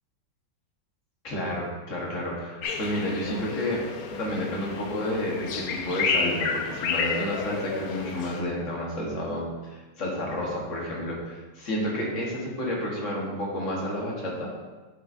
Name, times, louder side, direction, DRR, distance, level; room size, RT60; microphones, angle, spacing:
voice 1, 1.2-3.8 4.1-14.5, left 1 dB, 40° left, -3 dB, 1.6 m, -30 dB
sound 1, 2.6-8.4, left 5 dB, 75° left, 0.8 m, -31 dB
8.7 x 5.7 x 2.7 m, 1.2 s
omnidirectional pair, 2.2 m